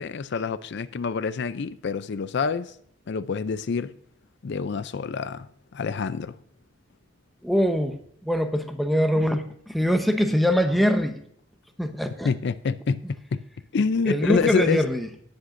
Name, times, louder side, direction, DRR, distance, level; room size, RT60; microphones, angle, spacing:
voice 1, 0.0-2.7 3.1-3.9 4.4-5.5 5.7-6.4 12.2-13.4 13.7-14.8, left 5 dB, 55° left, 0.4 m, -27 dB
voice 2, 7.4-8.0 8.2-11.2 11.8-12.3 14.0-15.1, equal, ahead, 0.9 m, -23 dB
18.5 x 7.8 x 2.6 m
head